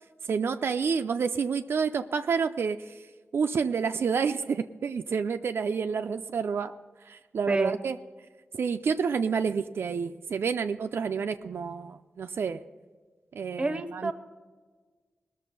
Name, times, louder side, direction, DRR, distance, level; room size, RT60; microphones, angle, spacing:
voice 1, 0.3-3.0 3.3-6.7 7.1-8.0 8.5-12.6 13.3-14.1, right 6 dB, 70° right, 7 dB, 0.4 m, -29 dB
voice 2, 13.6-14.1, right 2 dB, 25° right, 12 dB, 0.8 m, -28 dB
20.0 x 6.7 x 5.4 m, 1.4 s
wide cardioid pair, 135°, 4 cm